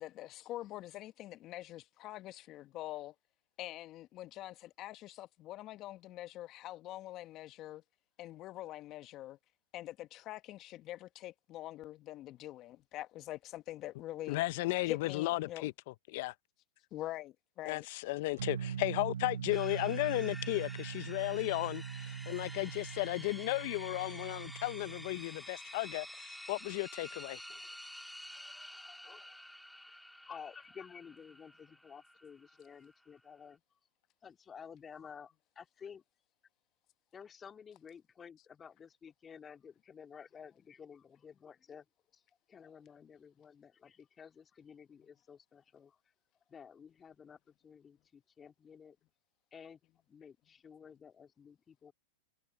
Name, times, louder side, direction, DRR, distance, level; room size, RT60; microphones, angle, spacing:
voice 1, 0.0-3.1 3.6-7.8 8.2-9.4 9.7-14.4 14.9-15.7 16.9-17.9, left 15 dB, 40° left, 1.2 m, -44 dB
voice 2, 14.3-16.3 17.6-27.4, left 21 dB, 60° left, 0.8 m, -35 dB
sound 1, 18.4-25.2, right 8 dB, 85° right, 0.3 m, -42 dB
sound 2, 19.5-33.5, left 1 dB, ahead, 2.5 m, -50 dB
voice 3, 28.3-33.6 34.2-36.0 37.1-41.9 42.1-42.2 42.5-46.0 46.5-49.0 49.5-49.8 50.1-51.9, left 7 dB, 20° left, 2.2 m, -53 dB
hypercardioid pair, 110°, 0 cm